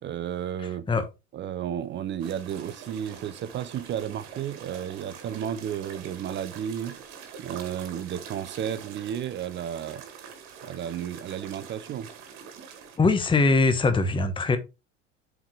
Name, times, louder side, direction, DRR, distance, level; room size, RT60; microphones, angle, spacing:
voice 1, 0.0-0.9 1.3-7.0 7.4-10.0 10.6-12.1, right 9 dB, 30° right, 0.6 m, -33 dB
sound 1, 2.2-13.0, right 7 dB, 60° right, 1.8 m, -44 dB
voice 2, 13.0-14.6, left 3 dB, 15° left, 0.9 m, -21 dB
7.2 x 4.7 x 3.3 m
figure-of-eight pair, 70°, 37 cm